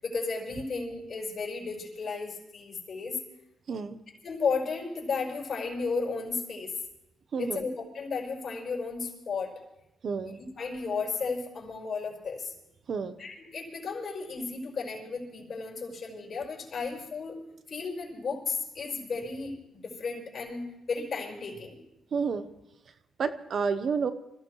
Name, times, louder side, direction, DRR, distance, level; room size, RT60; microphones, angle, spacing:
voice 1, 0.0-3.2 4.2-6.8 7.4-9.6 10.2-12.5 13.2-17.4 17.7-21.8, left 4 dB, 45° left, -1 dB, 5.2 m, -34 dB
voice 2, 3.7-4.0 7.3-7.6 10.0-10.4 12.9-13.1 22.1-22.5 23.2-24.1, right 5 dB, 55° right, 11 dB, 0.9 m, -30 dB
26.5 x 16.0 x 3.2 m, 0.88 s
cardioid pair, 120°, 0 cm